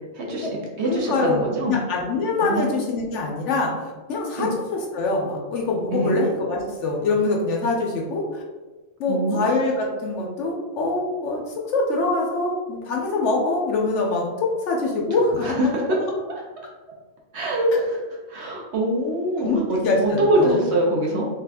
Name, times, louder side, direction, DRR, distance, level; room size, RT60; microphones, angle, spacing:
voice 1, 0.1-0.5 0.8-1.8 2.4-2.8 4.4-4.5 5.9-6.2 9.1-9.4 15.4-16.0 16.6-16.7 17.3-18.0 18.3-21.2, right 1 dB, 60° right, -1 dB, 0.9 m, -23 dB
voice 2, 0.9-3.7 4.1-8.4 9.0-11.4 11.7-15.7 19.4-20.6, left 3 dB, 70° left, 0 dB, 0.9 m, -24 dB
3.3 x 2.5 x 3.4 m, 1.3 s
omnidirectional pair, 1.4 m